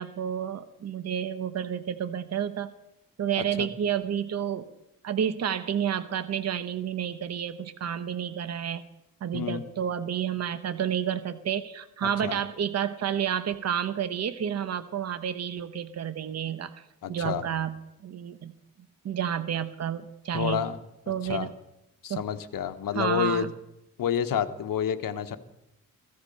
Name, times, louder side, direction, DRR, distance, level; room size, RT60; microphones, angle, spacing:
voice 1, 0.0-2.7 3.2-4.7 5.0-8.8 9.2-17.7 18.0-18.5 19.0-20.6 21.1-21.5 22.1-22.2 22.9-23.5, right 9 dB, 45° right, 11 dB, 0.9 m, -30 dB
voice 2, 17.0-17.4 20.3-20.8 21.2-21.5 22.0-23.5 24.0-25.4, left 8 dB, 70° left, 8 dB, 1.2 m, -29 dB
16.0 x 13.5 x 5.4 m, 0.86 s
cardioid pair, 115°, 35 cm